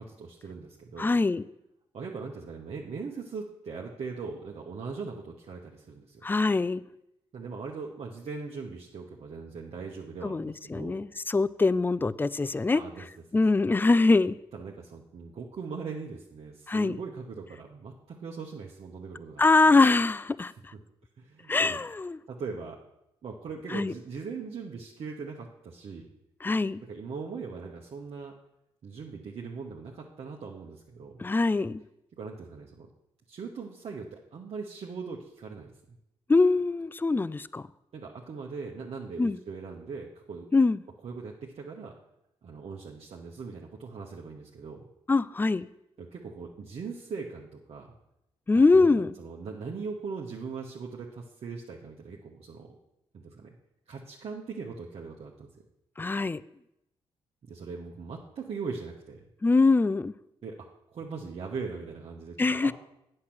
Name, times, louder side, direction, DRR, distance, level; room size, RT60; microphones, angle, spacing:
voice 1, 0.0-1.2 1.9-6.2 7.3-11.0 12.7-13.1 13.3-13.4 14.5-19.8 21.2-21.8 22.3-22.8 23.2-26.1 26.8-28.3 28.8-31.3 32.2-32.9 33.3-35.7 37.9-40.5 41.0-41.9 42.4-44.9 46.0-47.9 48.5-52.7 53.1-53.5 53.9-55.6 57.5-59.2 60.4-60.7 60.9-62.7, right 5 dB, 55° right, -2 dB, 1.1 m, -40 dB
voice 2, 1.0-1.4 6.2-6.8 10.2-12.8 13.3-14.4 16.7-17.0 19.4-20.5 21.5-22.2 23.7-23.9 26.4-26.8 31.2-31.8 36.3-37.6 39.2-39.4 40.5-40.8 45.1-45.7 48.5-49.1 56.0-56.4 59.4-60.1 62.4-62.7, left 3 dB, 15° left, 19 dB, 0.4 m, -23 dB
8.5 x 6.6 x 5.9 m, 0.83 s
hypercardioid pair, 50°, 12 cm